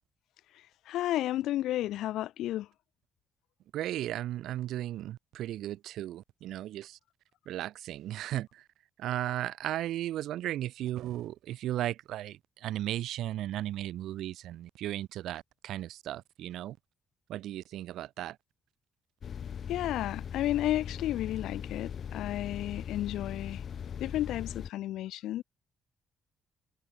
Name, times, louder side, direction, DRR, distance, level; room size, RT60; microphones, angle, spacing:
voice 1, 0.9-2.7 19.7-23.6 24.0-25.4, left 14 dB, 85° left, 0.8 m, -32 dB
voice 2, 3.7-7.0 7.5-8.7 9.0-16.8 17.3-18.4, right 13 dB, 80° right, 1.2 m, -35 dB
sound 1, 19.2-24.7, left 7 dB, 55° left, 3.8 m, -40 dB
cardioid pair, 90°, 0 cm